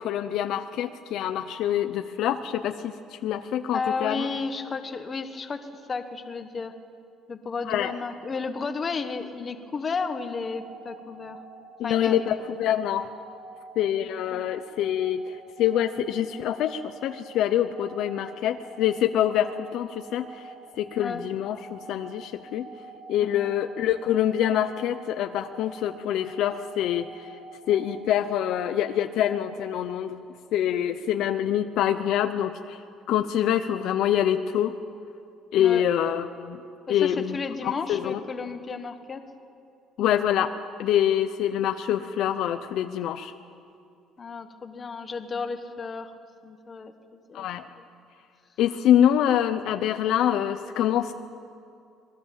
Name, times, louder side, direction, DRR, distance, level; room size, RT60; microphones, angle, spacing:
voice 1, 0.0-4.3 7.6-7.9 11.8-13.1 13.8-22.7 23.1-27.3 27.7-30.2 30.5-32.8 33.1-34.7 35.5-36.6 36.9-37.4 37.6-38.2 40.0-43.3 47.3-47.7 48.6-51.1, left 10 dB, 55° left, 9 dB, 0.7 m, -25 dB
voice 2, 3.7-5.6 5.9-6.7 7.3-11.4 11.8-12.2 14.3-14.4 21.0-21.2 23.2-23.5 35.6-35.8 36.9-39.2 44.2-46.1 46.4-46.9 47.3-47.6, left 4 dB, 20° left, 8 dB, 1.2 m, -33 dB
sound 1, 10.4-29.7, right 2 dB, 65° right, 4.2 m, -47 dB
26.0 x 20.5 x 7.5 m, 2.4 s
cardioid pair, 180°, 0 cm